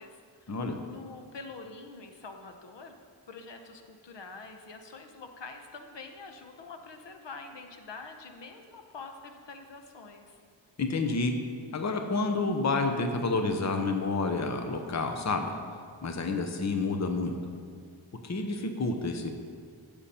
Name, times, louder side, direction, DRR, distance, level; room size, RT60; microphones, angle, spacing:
voice 1, 0.0-0.6 0.9-2.9 3.3-10.4, left 4 dB, 65° left, 5 dB, 1.0 m, -46 dB
voice 2, 10.8-11.3 11.7-15.5 16.0-17.3 18.2-19.3, left 3 dB, 35° left, 5 dB, 0.8 m, -29 dB
15.0 x 7.0 x 4.3 m, 2.1 s
wide cardioid pair, 130°, 46 cm